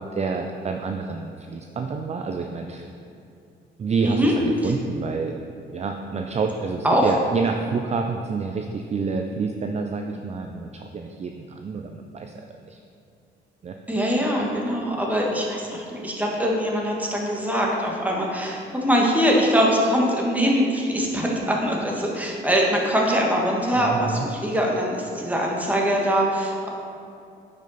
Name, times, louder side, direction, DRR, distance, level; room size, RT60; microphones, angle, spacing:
voice 1, 0.1-2.9 3.8-5.3 5.7-12.3 12.6-12.8 13.6-13.8 23.7-24.3, right 4 dB, 35° right, 4 dB, 0.5 m, -28 dB
voice 2, 4.0-4.3 4.6-4.7 6.8-7.0 13.9-26.7, equal, 10° right, -2 dB, 1.5 m, -22 dB
9.1 x 5.3 x 4.1 m, 2.6 s
cardioid pair, 90°, 20 cm